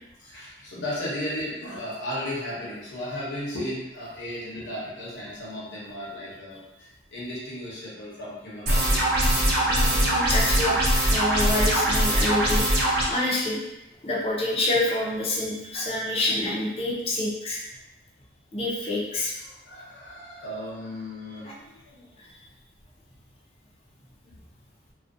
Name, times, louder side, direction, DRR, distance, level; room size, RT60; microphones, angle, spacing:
voice 1, 0.2-9.0 9.3-9.9 15.7-15.9 19.4-22.2 24.2-24.4, left 1 dB, 80° left, -7 dB, 0.7 m, -35 dB
sound 1, 8.7-13.0, right 1 dB, 55° right, 0.6 m, -22 dB
voice 2, 9.7-10.8 11.1-12.6 13.1-13.6 14.0-17.6 18.5-19.3, left 2 dB, 30° left, -4 dB, 0.5 m, -27 dB
2.4 x 2.1 x 2.5 m, 0.94 s
head